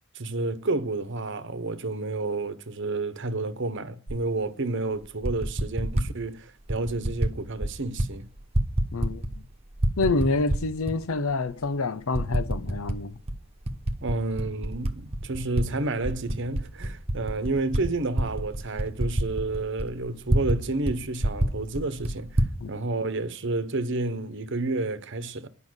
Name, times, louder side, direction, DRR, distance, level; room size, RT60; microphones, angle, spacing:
voice 1, 0.1-8.3 14.0-25.5, right 2 dB, 60° right, 1.0 m, -30 dB
Typing, 4.1-4.2 5.0-6.1 6.7-7.3 7.6-8.1 8.4-9.5 9.8-11.0 11.5-11.6 12.1-13.0 13.3-15.7 16.0-20.6 20.8-20.9 21.2-22.5, right 1 dB, 30° right, 1.2 m, -27 dB
voice 2, 8.9-9.2 10.0-13.1 22.6-22.7, left 3 dB, 80° left, 0.7 m, -27 dB
11.0 x 5.6 x 7.9 m
head